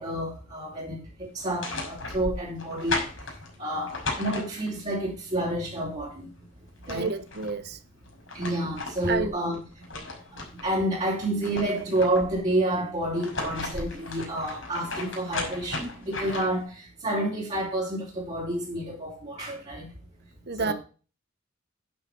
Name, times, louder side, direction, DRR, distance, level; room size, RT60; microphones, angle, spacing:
voice 1, 0.0-3.0 3.6-6.3 6.9-7.1 8.3-9.6 10.3-19.9 20.6-20.7, right 1 dB, 35° right, 4.0 m, -29 dB
sound 1, 1.4-4.9 6.4-6.5 6.7-7.5 8.1-10.7 11.1-12.4 13.0-16.7, left 2 dB, 75° left, 5.1 m, -35 dB
voice 2, 6.9-7.8 9.1-9.4 20.5-20.7, right 4 dB, 55° right, 1.0 m, -29 dB
10.5 x 6.2 x 5.5 m
head